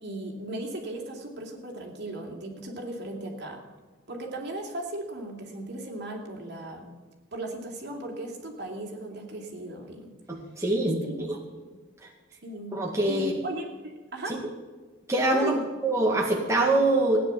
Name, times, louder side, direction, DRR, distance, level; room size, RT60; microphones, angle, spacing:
voice 1, 0.0-3.6 4.1-6.9 7.3-10.1 11.0-11.3 11.5-11.7 12.4-12.7 13.1-14.3 15.3-15.6, right 1 dB, 55° right, 1 dB, 3.0 m, -36 dB
voice 2, 10.3-11.0 12.0-12.1 12.7-13.3 15.1-15.6 15.8-17.2, right 2 dB, 15° right, -2 dB, 1.9 m, -24 dB
16.5 x 9.9 x 7.1 m, 1.4 s
head